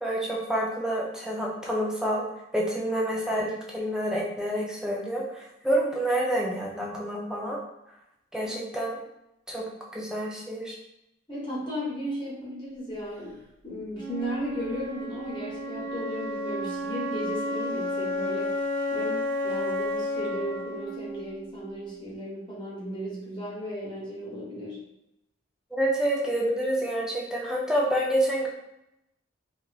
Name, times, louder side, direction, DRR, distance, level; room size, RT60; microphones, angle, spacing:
voice 1, 0.0-2.2 2.5-7.6 8.3-9.0 9.5-10.8 25.7-28.5, right 1 dB, 5° right, -3 dB, 0.3 m, -28 dB
voice 2, 11.3-13.4 13.6-18.6 18.9-24.8, equal, 25° left, -7 dB, 0.9 m, -35 dB
Wind instrument woodwind instrument, 13.9-22.0, left 1 dB, 45° right, 0.8 m, -32 dB
2.9 x 2.4 x 2.3 m, 0.88 s
head